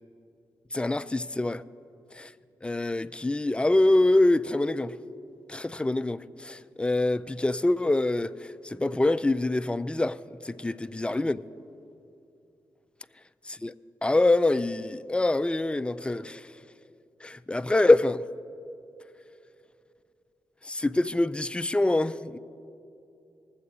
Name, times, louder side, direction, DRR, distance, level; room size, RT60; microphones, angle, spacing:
voice 1, 0.7-1.6 2.2-2.3 2.6-4.9 5.5-10.2 10.4-11.4 13.6-13.7 14.0-16.5 17.2-18.2 20.6-22.4, left 2 dB, 15° left, 0.4 m, -25 dB
19.5 x 7.7 x 4.2 m
supercardioid pair, 55°, 8 cm